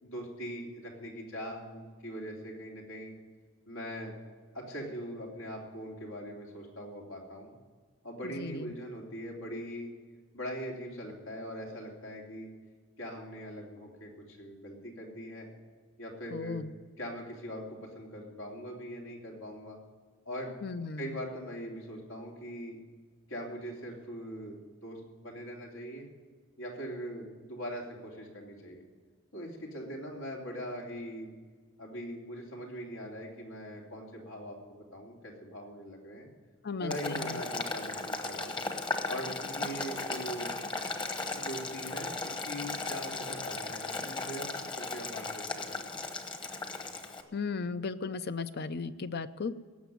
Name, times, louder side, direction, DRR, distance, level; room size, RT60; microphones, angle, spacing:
voice 1, 0.0-3.1 3.7-4.1 4.5-7.5 8.0-9.9 10.3-12.5 13.0-15.5 16.0-16.6 17.0-19.8 20.2-20.5 21.0-22.8 23.3-24.6 24.8-26.1 26.6-28.8 29.3-31.3 31.8-36.3 36.8-38.6 39.1-40.6 41.3-44.5 44.7-45.9, equal, 85° left, -1 dB, 3.2 m, -41 dB
voice 2, 8.2-8.7 16.3-16.7 20.6-21.2 36.6-37.4 47.3-49.5, left 4 dB, 50° left, 13 dB, 0.6 m, -36 dB
Boiling, 36.9-47.2, left 3 dB, 25° left, 1.1 m, -36 dB
17.5 x 7.2 x 9.4 m, 1.5 s
head